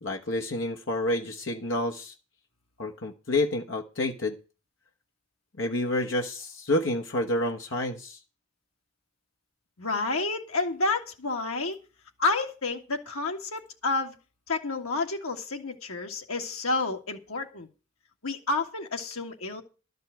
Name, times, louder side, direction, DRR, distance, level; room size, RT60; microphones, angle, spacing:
voice 1, 0.0-2.1 2.8-4.4 5.6-8.2, left 1 dB, 60° left, 1.2 m, -29 dB
voice 2, 9.8-11.8 12.2-14.2 14.5-17.7 18.2-19.6, left 3 dB, 80° left, 2.0 m, -30 dB
12.5 x 5.4 x 9.0 m
head